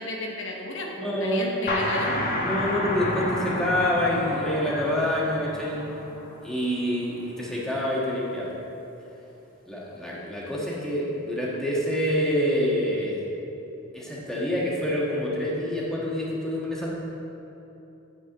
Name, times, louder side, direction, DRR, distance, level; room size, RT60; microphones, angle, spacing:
voice 1, 0.0-2.3, left 2 dB, 60° left, -1 dB, 1.0 m, -33 dB
voice 2, 0.9-1.9 2.4-5.8 6.4-8.5 9.7-13.2 13.9-17.0, equal, ahead, -6 dB, 1.4 m, -27 dB
sound 1, 1.7-7.1, left 1 dB, 40° left, 1.1 m, -30 dB
8.2 x 4.8 x 7.4 m, 2.9 s
head